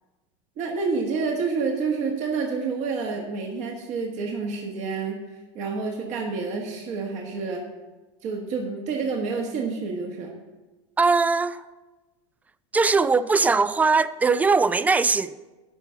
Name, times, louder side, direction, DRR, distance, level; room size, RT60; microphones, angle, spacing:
voice 1, 0.6-5.2 5.5-7.6 8.2-10.3, right 4 dB, 45° right, 1.5 m, -28 dB
voice 2, 11.0-11.6 12.7-15.3, right 4 dB, 10° right, 0.3 m, -20 dB
11.5 x 4.3 x 7.0 m
hypercardioid pair, 110°, 16 cm